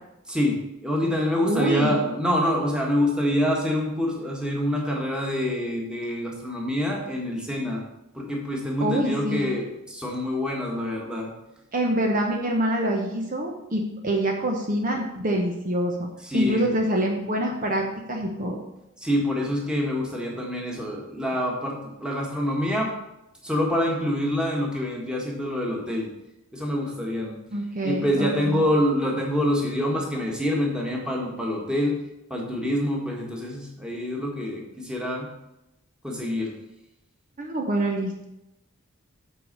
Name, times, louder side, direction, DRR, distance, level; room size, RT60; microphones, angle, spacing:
voice 1, 0.3-7.8 8.1-11.3 16.2-16.7 19.0-22.9 23.4-26.1 26.5-27.4 27.8-32.0 32.3-35.3 36.0-36.5, left 1 dB, 5° right, -2 dB, 1.7 m, -26 dB
voice 2, 1.4-2.0 8.8-9.5 11.7-18.6 27.5-28.6 37.4-38.2, right 1 dB, 40° right, 1 dB, 1.0 m, -26 dB
8.4 x 4.9 x 6.7 m, 0.89 s
head